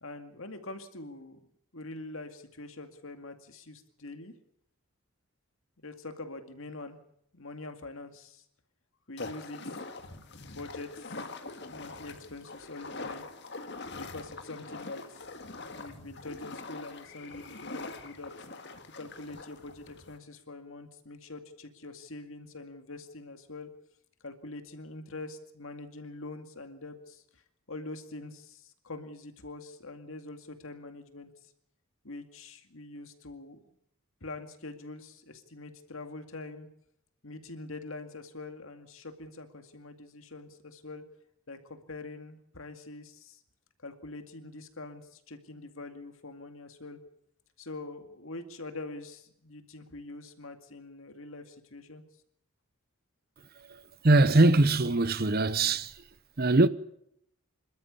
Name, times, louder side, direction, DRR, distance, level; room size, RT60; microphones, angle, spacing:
voice 1, 0.0-1.4 1.7-4.3 5.8-7.0 7.3-8.4 9.1-9.8 10.4-11.2 11.7-13.2 13.9-15.3 15.7-18.3 19.0-23.7 24.2-27.4 27.7-31.5 32.0-33.8 34.2-36.7 37.2-41.0 41.5-43.4 43.8-47.0 47.6-52.0, left 2 dB, 65° left, 2.2 m, -44 dB
sound 1, 9.2-20.2, left 3 dB, 50° left, 1.8 m, -43 dB
voice 2, 54.0-55.9 56.4-56.7, right 2 dB, 45° right, 0.7 m, -22 dB
26.5 x 13.0 x 8.3 m
head